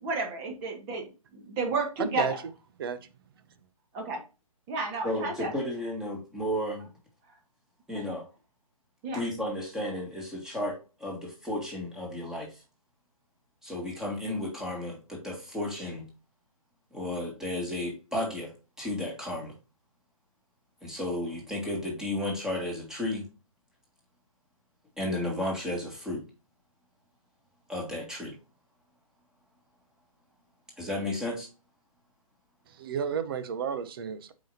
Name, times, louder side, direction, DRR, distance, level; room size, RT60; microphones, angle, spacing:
voice 1, 0.0-1.0 1.6-2.3 3.9-4.2 4.7-5.5 7.9-8.0 9.0-9.2, right 3 dB, 25° right, 1.7 m, -31 dB
voice 2, 2.0-2.3 2.8-3.0 32.8-34.3, right 7 dB, 40° right, 0.9 m, -32 dB
voice 3, 5.0-6.9 7.9-8.2 9.1-12.6 13.6-16.1 16.9-18.5 18.8-19.5 20.8-23.3 25.0-26.2 27.7-28.4 30.8-31.5, left 1 dB, 5° right, 2.1 m, -33 dB
7.3 x 5.1 x 2.8 m
figure-of-eight pair, 135°, 18 cm